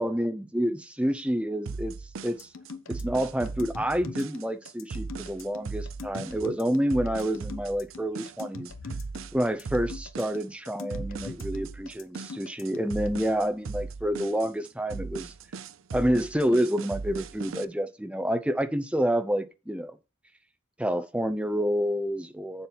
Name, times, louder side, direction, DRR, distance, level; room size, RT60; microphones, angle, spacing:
voice 1, 0.0-1.9 2.2-2.5 2.9-8.7 9.3-15.3 15.9-20.0 20.8-22.7, equal, 5° right, 0.6 m, -28 dB
sound 1, 1.7-17.7, right 4 dB, 75° right, 0.5 m, -38 dB
sound 2, 2.3-13.1, left 4 dB, 80° left, 0.9 m, -42 dB
7.5 x 7.1 x 4.0 m
head